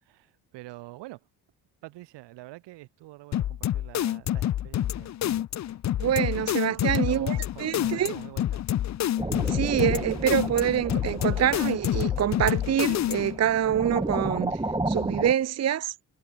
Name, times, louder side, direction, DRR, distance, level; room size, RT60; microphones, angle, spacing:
voice 1, 0.0-1.3 1.8-5.1 6.8-8.7, right 18 dB, 85° right, 5.7 m, -45 dB
sound 1, 3.3-13.4, left 12 dB, 45° left, 0.6 m, -28 dB
voice 2, 6.0-8.1 9.5-14.6 14.9-15.9, right 10 dB, 40° right, 0.7 m, -26 dB
sound 2, 9.2-15.3, right 2 dB, 10° right, 2.8 m, -32 dB
supercardioid pair, 75°, 41 cm